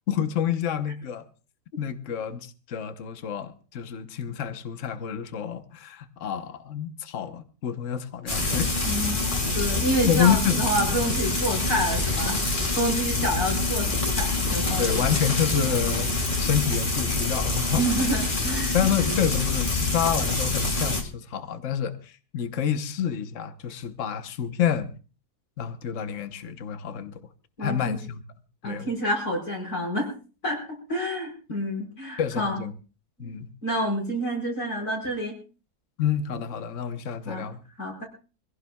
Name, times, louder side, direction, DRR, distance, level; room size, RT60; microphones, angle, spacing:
voice 1, 0.1-1.2 1.8-8.7 10.1-10.7 14.8-17.8 18.7-24.9 25.6-27.2 27.6-28.2 28.6-28.9 32.2-32.7 33.2-33.5 36.0-37.6, left 8 dB, 55° left, 1.3 m, -28 dB
Frying (food), 8.3-21.0, left 3 dB, 30° left, 2.1 m, -26 dB
voice 2, 8.8-15.1 17.8-19.2 27.6-28.0 28.6-30.1 30.4-30.6 30.9-32.6 33.2-33.3 33.6-35.3 37.3-37.5 37.8-38.0, equal, 70° left, 5.7 m, -28 dB
24.5 x 16.5 x 2.3 m
omnidirectional pair, 1.7 m